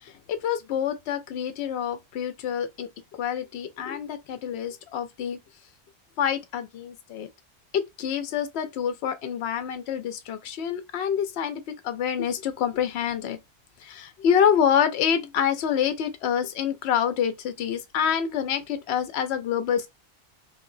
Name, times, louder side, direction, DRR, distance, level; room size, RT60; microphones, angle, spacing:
voice 1, 0.0-5.4 6.2-7.3 7.7-13.4 13.8-19.9, left 8 dB, 80° left, 0.8 m, -27 dB
3.2 x 2.8 x 2.6 m
omnidirectional pair, 1.1 m